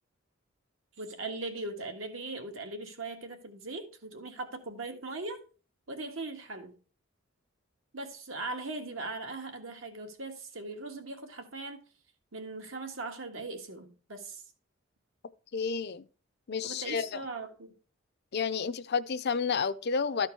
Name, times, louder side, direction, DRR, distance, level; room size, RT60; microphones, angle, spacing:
voice 1, 1.0-5.4 5.9-6.7 7.9-11.8 12.3-14.4 16.6-17.7, right 2 dB, 75° right, 1.6 m, -39 dB
voice 2, 15.5-16.0 16.5-17.2 18.3-20.3, left 5 dB, 55° left, 0.5 m, -30 dB
12.5 x 4.5 x 4.6 m
head